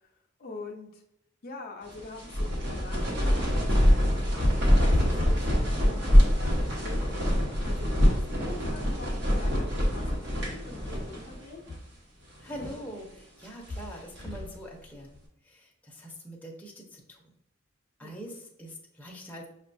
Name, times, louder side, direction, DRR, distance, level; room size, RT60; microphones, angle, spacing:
voice 1, 0.4-1.0 1.4-5.4 5.7-7.2 7.6-11.6 18.0-18.3, left 3 dB, 50° left, 0 dB, 0.5 m, -45 dB
sound 1, 1.9-11.4 11.7-11.8 12.4-12.9 13.4-14.5, equal, 60° right, 1.1 m, -25 dB
voice 2, 12.4-15.2 15.4-17.2 18.0-19.5, equal, 10° left, -1 dB, 0.6 m, -43 dB
5.7 x 2.2 x 2.6 m, 0.80 s
head